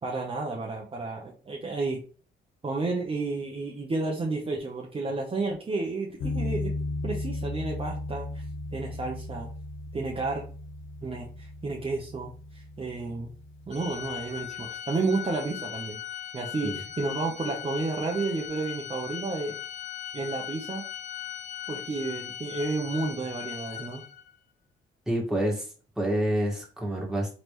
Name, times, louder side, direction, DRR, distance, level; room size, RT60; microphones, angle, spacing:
voice 1, 0.0-2.0 2.6-6.7 7.0-8.4 8.7-9.5 9.9-10.4 11.0-13.3 13.7-16.0 16.3-19.6 20.1-20.8 21.7-24.0, right 3 dB, 30° right, -1 dB, 0.9 m, -31 dB
sound 1, 6.2-14.4, left 2 dB, 80° left, 0.9 m, -36 dB
Organ, 13.7-24.3, left 10 dB, 40° left, 0.8 m, -39 dB
voice 2, 25.1-25.7 26.0-27.3, right 1 dB, 5° right, -3 dB, 1.8 m, -27 dB
3.8 x 3.3 x 3.1 m, 0.38 s
cardioid pair, 90°, 20 cm